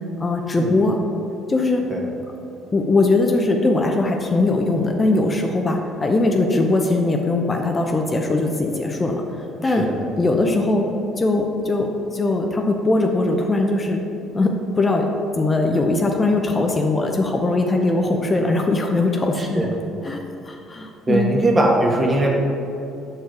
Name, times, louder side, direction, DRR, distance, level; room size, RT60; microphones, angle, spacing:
voice 1, 0.2-1.0 1.5-1.9 2.7-9.2 9.6-9.9 10.2-10.9 11.2-14.0 14.3-15.1 15.4-19.7 20.0-20.2 20.4-21.3, left 2 dB, 30° left, 3 dB, 0.6 m, -20 dB
voice 2, 9.6-10.0 19.4-19.7 21.1-22.3, right 2 dB, 25° right, -1 dB, 1.4 m, -20 dB
6.2 x 4.7 x 4.7 m, 2.7 s
hypercardioid pair, 65°, 0 cm